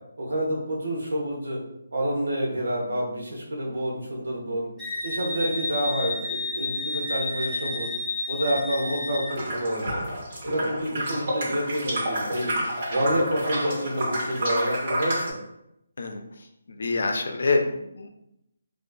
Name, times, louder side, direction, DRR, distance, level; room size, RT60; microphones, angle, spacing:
voice 1, 0.2-1.6 1.9-4.7 5.0-7.9 8.3-10.1 10.4-12.5 12.9-15.4, equal, 80° right, -3 dB, 0.9 m, -28 dB
Wind instrument woodwind instrument, 4.8-9.3, left 2 dB, 10° left, 0.5 m, -31 dB
sound 1, 9.3-15.3, right 1 dB, 45° right, 0.6 m, -29 dB
voice 2, 16.0-18.1, left 3 dB, 65° left, 5 dB, 0.3 m, -27 dB
2.4 x 2.2 x 2.2 m, 0.82 s
hypercardioid pair, 170°, 0 cm